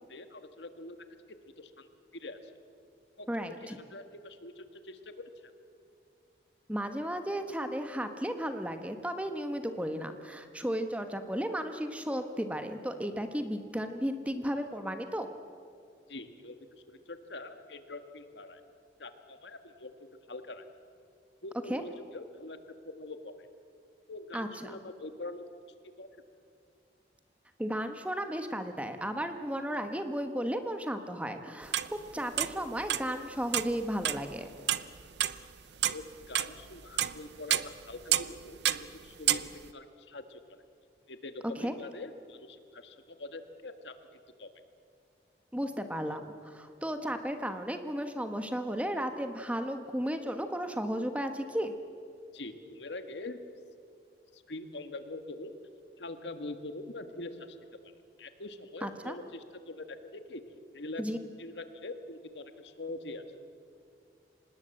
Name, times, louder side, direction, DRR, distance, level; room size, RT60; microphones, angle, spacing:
voice 1, 0.1-1.0 1.6-2.5 3.2-3.3 3.6-5.1 5.4-5.5 16.1-18.6 19.0-19.9 20.3-20.6 21.4-22.6 22.8-23.3 24.1-25.4 26.0-26.1 35.4-35.5 35.9-40.6 41.1-43.9 44.4-44.5 52.3-53.4 54.3-55.6 56.0-57.6 58.2-60.4 60.7-61.0 61.4-63.2, left 2 dB, 85° left, 9 dB, 1.6 m, -44 dB
voice 2, 3.3-3.8 6.7-15.3 21.7-21.8 24.3-24.8 27.6-34.5 41.6-41.7 45.5-51.7 58.8-59.1 61.0-61.2, equal, 5° right, 7 dB, 1.2 m, -34 dB
sound 1, 31.7-32.1 32.4-33.0 33.5-34.3 34.7-35.4 35.8-37.2 37.5-38.4 38.7-38.9 39.3-39.5, right 12 dB, 75° right, 0.7 m, -29 dB
25.5 x 19.5 x 7.8 m, 2.4 s
head